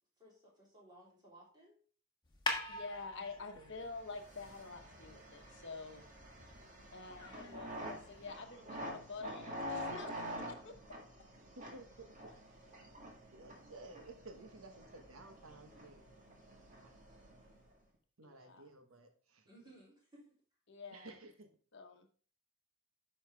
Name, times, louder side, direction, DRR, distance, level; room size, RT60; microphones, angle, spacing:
voice 1, 0.2-1.8 19.4-20.3, right 1 dB, 20° right, -5 dB, 3.4 m, -60 dB
sound 1, 2.2-8.4, left 2 dB, 20° left, 1.3 m, -46 dB
voice 2, 2.7-6.0 6.9-10.7 18.2-18.7 20.7-21.2 21.7-22.1, left 4 dB, 55° left, 5 dB, 1.0 m, -48 dB
voice 3, 3.5-3.9 11.6-12.3 13.3-16.0 16.8-16.9 18.2-19.5 20.9-21.5, right 2 dB, 80° right, 6 dB, 1.1 m, -54 dB
sound 2, 3.9-17.7, equal, 35° right, 1.8 m, -48 dB
9.5 x 5.7 x 3.4 m, 0.41 s
head